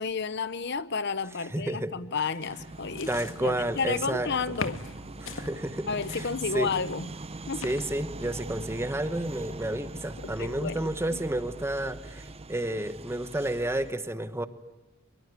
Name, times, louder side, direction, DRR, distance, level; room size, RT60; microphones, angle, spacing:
voice 1, 0.0-3.1 3.4-4.8 5.9-7.1 7.5-7.7 10.2-11.2, left 5 dB, 60° left, 15 dB, 1.0 m, -31 dB
voice 2, 1.5-1.9 3.1-4.3 5.2-6.7 7.6-14.5, right 1 dB, 15° right, 12 dB, 1.2 m, -31 dB
sound 1, 2.4-13.9, right 2 dB, 30° right, 0.8 m, -42 dB
sound 2, 2.7-4.1 4.5-5.5 6.0-8.0, left 4 dB, 80° left, 1.8 m, -41 dB
24.0 x 23.0 x 9.6 m, 1.1 s
head